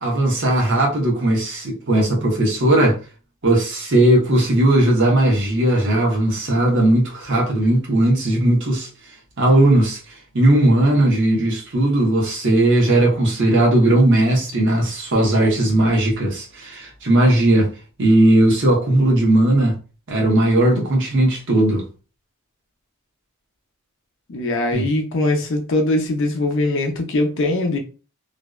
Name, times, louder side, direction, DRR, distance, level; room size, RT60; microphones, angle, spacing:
voice 1, 0.0-3.0 3.4-8.9 9.4-10.0 10.3-17.7 18.0-19.7 20.1-21.8 24.7-24.9, right 1 dB, 60° right, 0.8 m, -17 dB
voice 2, 24.3-27.8, left 2 dB, 60° left, 0.6 m, -21 dB
2.5 x 2.1 x 2.2 m
head